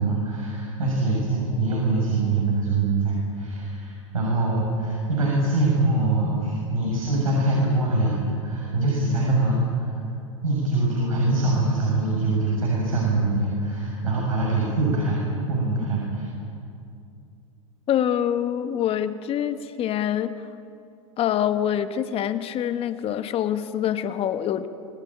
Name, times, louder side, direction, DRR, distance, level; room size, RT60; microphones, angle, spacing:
voice 1, 0.0-9.9 10.4-15.2 15.5-16.2, right 2 dB, 85° right, -4 dB, 7.1 m, -23 dB
voice 2, 17.9-20.4 21.2-24.7, left 10 dB, 35° left, 10 dB, 1.4 m, -25 dB
26.5 x 19.5 x 8.8 m, 2.5 s
hypercardioid pair, 95°, 17 cm